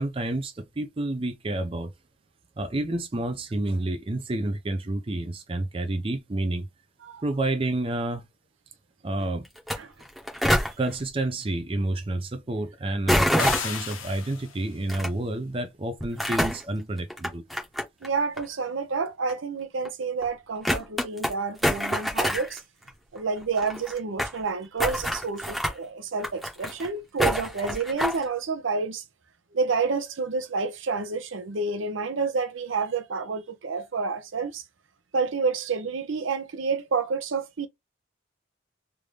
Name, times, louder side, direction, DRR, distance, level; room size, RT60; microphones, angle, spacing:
voice 1, 0.0-1.9 2.6-6.7 7.2-8.3 9.0-9.5 10.8-17.4, right 2 dB, 25° right, 0.5 m, -29 dB
sound 1, 9.6-9.8 10.0-10.7 13.1-13.9 14.9-15.1 16.0-16.6 17.1-18.1 18.4-18.5 19.3-19.4 19.9-20.0 20.2-20.3 20.6-21.3 21.6-22.6 22.9-23.0 23.2-23.3 23.4-24.4 24.8-25.7 26.2-26.9 27.2-28.2, equal, ahead, 0.8 m, -26 dB
sound 2, 13.4-14.7, left 7 dB, 85° left, 0.8 m, -33 dB
voice 2, 18.0-22.6 23.1-29.0 29.5-34.6 35.1-37.7, right 4 dB, 75° right, 0.6 m, -29 dB
3.4 x 2.5 x 3.1 m
head